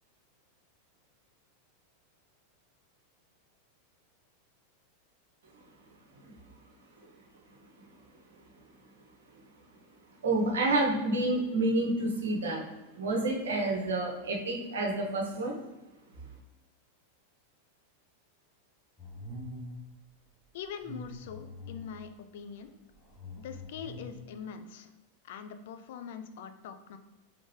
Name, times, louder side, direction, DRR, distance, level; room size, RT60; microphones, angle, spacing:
voice 1, 10.2-12.6 12.9-15.5, right 2 dB, 65° right, 1 dB, 0.8 m, -29 dB
sound 1, 19.0-19.9 20.7-22.0 22.9-24.3, left 1 dB, 5° left, 0.9 m, -44 dB
voice 2, 20.5-22.7 23.4-24.9 25.2-27.0, left 7 dB, 55° left, 8 dB, 0.4 m, -43 dB
3.8 x 3.4 x 3.1 m, 1.1 s
figure-of-eight pair, 90°, 0 cm